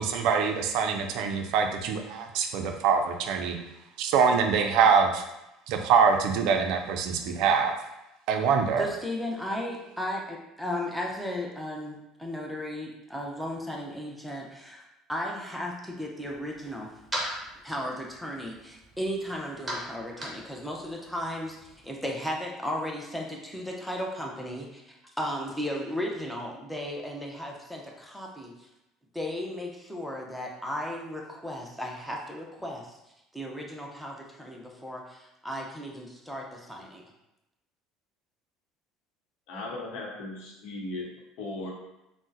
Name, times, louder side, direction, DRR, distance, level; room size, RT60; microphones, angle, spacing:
voice 1, 0.0-3.6 4.0-5.2 5.7-7.7 8.3-8.9, right 6 dB, 70° right, 5 dB, 0.4 m, -24 dB
voice 2, 8.8-14.8 15.1-16.9 17.6-28.7 29.1-33.0 33.3-37.1, left 1 dB, ahead, -1 dB, 0.6 m, -35 dB
sound 1, 16.2-21.9, right 1 dB, 15° right, 1.0 m, -40 dB
voice 3, 39.5-41.1 41.4-41.7, left 2 dB, 70° left, -2 dB, 0.8 m, -37 dB
3.7 x 2.1 x 2.7 m, 0.90 s
supercardioid pair, 90°, 0 cm